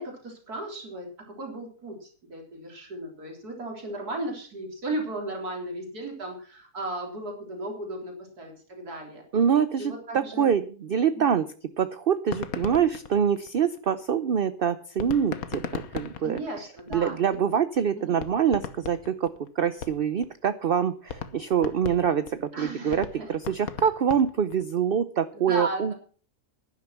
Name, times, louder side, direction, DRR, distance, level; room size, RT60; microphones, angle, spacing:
voice 1, 0.0-9.2 9.8-10.5 11.1-11.3 16.2-17.5 17.9-18.2 22.5-23.3 25.3-25.9, right 1 dB, 75° right, 1 dB, 4.1 m, -35 dB
voice 2, 9.3-11.5 11.8-16.4 16.9-25.9, right 8 dB, 55° right, 13 dB, 0.7 m, -25 dB
sound 1, 12.2-14.0 15.0-17.4 17.8-17.9 18.2-20.3 20.6-20.7 21.1-24.7, left 7 dB, 70° left, 1.5 m, -37 dB
11.5 x 11.0 x 5.8 m, 0.41 s
omnidirectional pair, 1.6 m